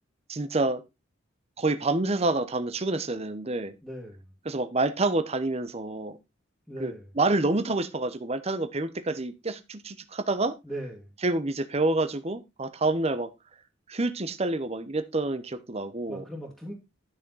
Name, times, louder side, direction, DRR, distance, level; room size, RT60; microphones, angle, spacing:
voice 1, 0.3-0.8 1.6-3.7 4.4-6.2 6.8-10.5 11.2-13.3 13.9-16.2, right 2 dB, 35° right, 10 dB, 0.9 m, -28 dB
voice 2, 3.8-4.3 6.7-7.1 10.6-11.1 16.1-16.7, right 1 dB, ahead, -5 dB, 2.2 m, -39 dB
11.0 x 6.3 x 4.0 m, 0.24 s
head